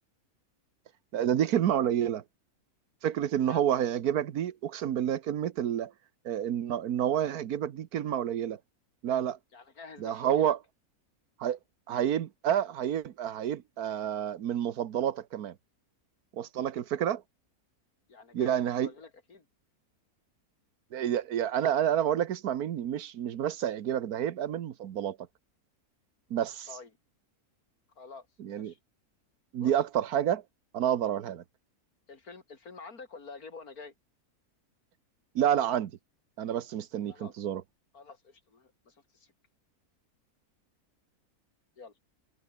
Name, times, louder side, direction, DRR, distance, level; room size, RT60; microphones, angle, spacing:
voice 1, 1.1-2.2 3.0-5.9 6.2-8.6 9.0-9.4 10.0-10.6 11.4-11.6 11.9-15.5 16.3-17.2 18.3-18.9 20.9-25.2 26.3-26.7 28.4-28.7 29.5-30.4 30.7-31.4 35.3-35.9 36.4-37.6, right 10 dB, 80° right, 1.5 m, -29 dB
voice 2, 9.5-10.6 18.1-19.5 26.7-26.9 28.0-28.3 28.5-28.8 29.6-29.8 32.1-33.9 37.1-37.4 37.9-39.3 41.8-41.9, left 4 dB, 75° left, 3.3 m, -48 dB
omnidirectional pair, 1.6 m